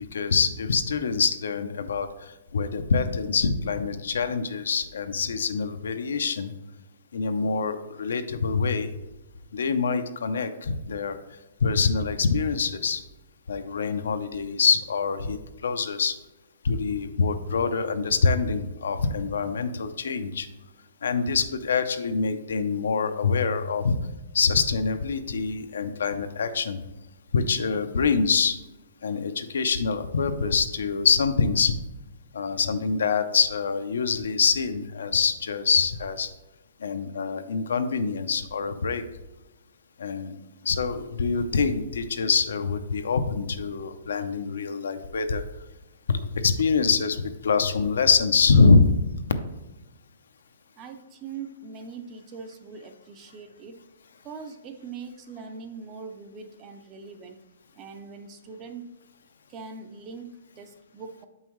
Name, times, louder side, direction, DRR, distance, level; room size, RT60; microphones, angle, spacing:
voice 1, 0.0-6.5 7.1-8.9 9.5-11.2 11.6-13.0 13.5-16.1 16.6-20.5 21.0-24.0 24.3-26.8 27.3-28.6 29.0-31.7 32.3-36.3 36.8-39.0 40.0-40.4 40.6-45.4 46.1-49.0, left 5 dB, 85° left, 9 dB, 0.6 m, -25 dB
voice 2, 50.8-53.8 54.2-57.4 57.7-58.9 59.5-61.3, right 5 dB, 15° right, 7 dB, 0.4 m, -41 dB
7.0 x 5.5 x 3.1 m, 1.0 s
hypercardioid pair, 175°, 0 cm